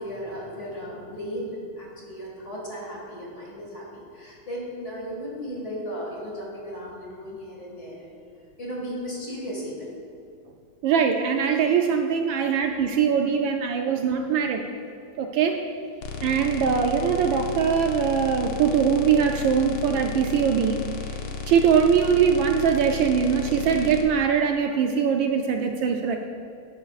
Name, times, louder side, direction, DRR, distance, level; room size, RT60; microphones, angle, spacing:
voice 1, 0.0-8.1 8.6-9.9 12.4-12.5, equal, 35° left, -3 dB, 2.2 m, -35 dB
voice 2, 10.8-14.6 15.2-15.6 16.2-20.8 21.5-26.2, right 7 dB, 75° right, 3 dB, 1.3 m, -22 dB
sound 1, 16.0-24.0, left 5 dB, 75° left, 1.7 m, -34 dB
11.5 x 10.5 x 2.4 m, 2.5 s
omnidirectional pair, 2.3 m